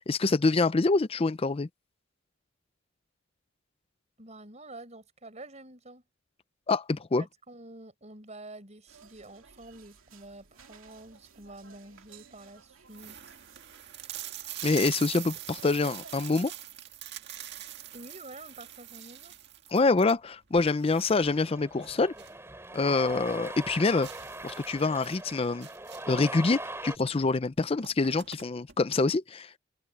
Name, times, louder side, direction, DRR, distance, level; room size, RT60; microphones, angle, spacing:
voice 1, 0.0-1.7 6.7-7.2 14.6-16.5 19.7-22.1 22.7-24.1 24.4-25.7 26.1-29.6, left 3 dB, 30° left, 0.5 m, -26 dB
voice 2, 4.2-6.0 7.2-13.4 17.9-19.3, right 2 dB, 35° right, 5.0 m, -48 dB
sound 1, 8.9-16.3, right 6 dB, 75° right, 2.7 m, -56 dB
sound 2, 11.1-11.5 12.2-12.3 12.5-12.6 12.9-22.5 22.8-22.9 23.3-23.4 24.0-26.3 27.2-27.3 27.6-28.8, right 12 dB, 55° right, 1.9 m, -43 dB
Cheering, 21.0-27.0, right 2 dB, 15° right, 3.1 m, -41 dB
head